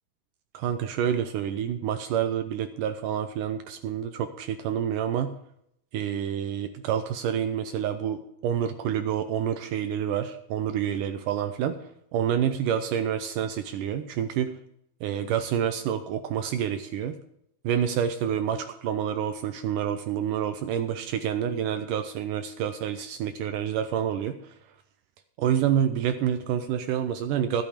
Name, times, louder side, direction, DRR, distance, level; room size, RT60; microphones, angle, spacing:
voice 1, 0.5-5.3 5.9-11.8 12.1-14.6 15.0-17.2 17.6-24.5 25.4-27.6, right 9 dB, 85° right, 8 dB, 1.8 m, -28 dB
13.0 x 8.9 x 5.0 m, 0.74 s
omnidirectional pair, 4.5 m